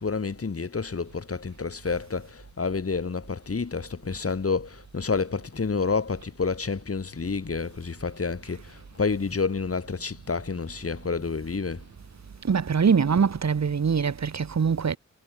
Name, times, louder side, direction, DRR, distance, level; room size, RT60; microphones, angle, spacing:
voice 1, 0.0-11.8, left 4 dB, 50° left, 5.7 m, -29 dB
voice 2, 12.4-15.0, right 6 dB, 65° right, 2.7 m, -23 dB
wide cardioid pair, 95°, 30 cm